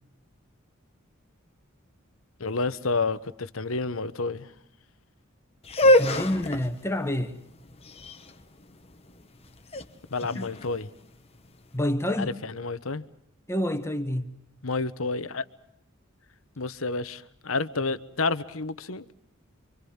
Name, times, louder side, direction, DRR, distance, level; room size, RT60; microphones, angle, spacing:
voice 1, 2.4-4.5 10.1-10.9 12.2-13.0 14.6-15.4 16.6-19.1, left 3 dB, 80° left, 1.2 m, -30 dB
sound 1, 5.6-11.6, left 1 dB, 30° left, 1.3 m, -26 dB
voice 2, 5.8-7.4 10.3-10.5 11.7-12.4 13.5-14.3, left 1 dB, 10° left, 1.6 m, -28 dB
28.5 x 25.0 x 7.2 m
head